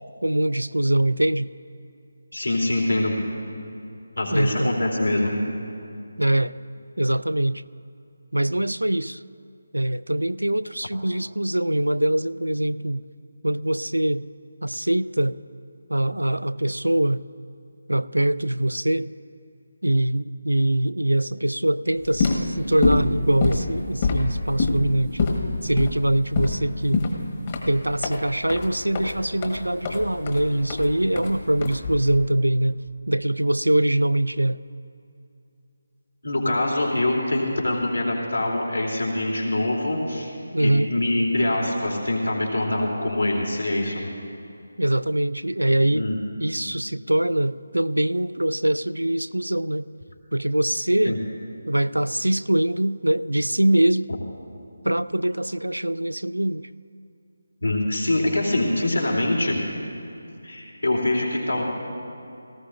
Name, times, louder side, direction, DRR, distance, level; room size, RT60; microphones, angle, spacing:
voice 1, 0.2-1.5 4.3-4.7 6.2-6.5 7.0-7.6 8.3-9.2 9.7-13.0 13.4-14.2 14.6-15.4 15.9-17.2 17.9-19.1 19.8-25.2 25.6-27.0 27.7-32.8 33.1-34.6 40.5-40.9 44.8-46.1 46.4-49.9 50.3-51.2 51.7-54.1 54.8-56.7, right 1 dB, 85° right, 16 dB, 0.3 m, -23 dB
voice 2, 2.3-3.1 4.2-5.4 36.2-40.3 40.6-44.0 45.9-46.2 51.0-51.2 57.6-59.6 60.4-61.6, left 1 dB, 80° left, -2 dB, 3.0 m, -24 dB
sound 1, 22.0-32.2, left 3 dB, 30° left, 1.2 m, -26 dB
18.0 x 14.5 x 2.5 m, 2.6 s
figure-of-eight pair, 155°, 0 cm